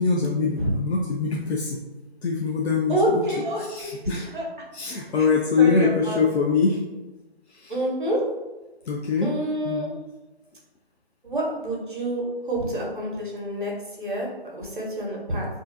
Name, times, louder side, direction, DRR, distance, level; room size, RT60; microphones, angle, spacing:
voice 1, 0.0-1.8 2.2-3.2 3.6-4.3 4.7-6.9 7.5-7.7 8.9-9.4 9.6-9.8, left 4 dB, 90° left, -1 dB, 0.5 m, -23 dB
voice 2, 2.9-4.0 4.3-4.4 5.2-5.3 5.6-6.2 7.7-8.2 9.2-9.9 11.2-13.7 14.0-15.5, right 1 dB, 50° right, -3 dB, 0.7 m, -27 dB
2.5 x 2.2 x 2.4 m, 1.1 s
figure-of-eight pair, 170°, 32 cm